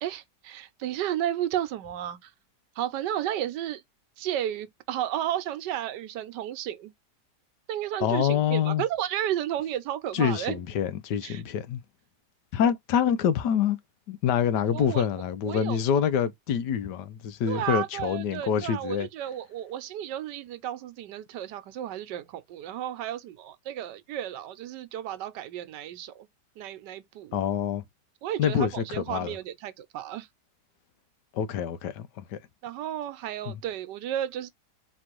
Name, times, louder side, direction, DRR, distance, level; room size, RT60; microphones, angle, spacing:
voice 1, 0.0-2.3 2.8-3.8 4.2-6.9 7.7-10.6 11.2-11.4 14.7-15.1 15.5-15.8 17.5-26.3 26.6-27.4 28.2-30.3 32.6-34.5, right 11 dB, 80° right, 1.3 m, -33 dB
voice 2, 8.0-8.8 10.1-11.8 12.5-13.8 14.1-19.1 27.3-27.8 28.4-29.4 31.3-32.4 33.5-33.6, left 8 dB, 80° left, 1.4 m, -26 dB
4.4 x 3.0 x 3.0 m
omnidirectional pair, 1.8 m